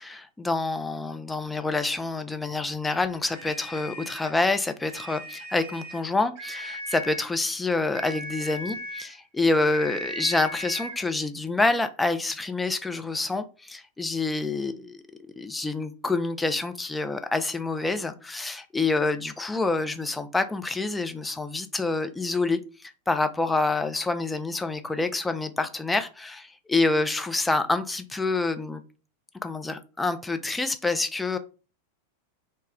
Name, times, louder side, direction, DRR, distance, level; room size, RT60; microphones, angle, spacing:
voice 1, 0.0-15.0 15.4-28.8 29.4-31.4, left 3 dB, 10° left, 0.3 m, -27 dB
sound 1, 3.3-4.4 4.8-6.1 6.3-7.3 7.9-9.1 9.7-11.0, equal, 45° right, 0.8 m, -38 dB
2.2 x 2.1 x 3.4 m
figure-of-eight pair, 90°, 0 cm